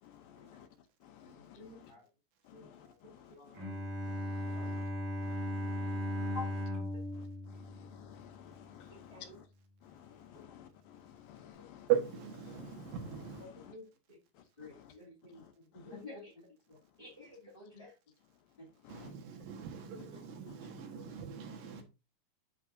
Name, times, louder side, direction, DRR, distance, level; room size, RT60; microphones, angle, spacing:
voice 1, 0.0-0.7 1.0-1.9 2.4-3.6 4.0-4.9 5.2-6.4 7.1-9.5 9.8-11.9 12.5-13.7 14.3-14.9 15.3-16.0 18.8-19.1 20.5-20.6, left 10 dB, 75° left, 2.4 m, -55 dB
voice 2, 1.2-2.1 2.5-3.0 3.3-3.5 4.6-4.7 6.3-6.5 6.9-7.0 8.9-9.4 10.4-10.5 11.6-11.7 13.4-14.2 14.6-17.9 18.6-18.7 18.9-19.0 19.5-19.8 20.1-20.2 20.9-21.0, left 3 dB, 20° left, 1.9 m, -51 dB
Bowed string instrument, 3.5-8.5, left 1 dB, 40° right, 2.9 m, -37 dB
voice 3, 11.9-13.4 18.9-21.8, right 10 dB, 70° right, 3.1 m, -37 dB
8.5 x 6.5 x 2.6 m
omnidirectional pair, 4.4 m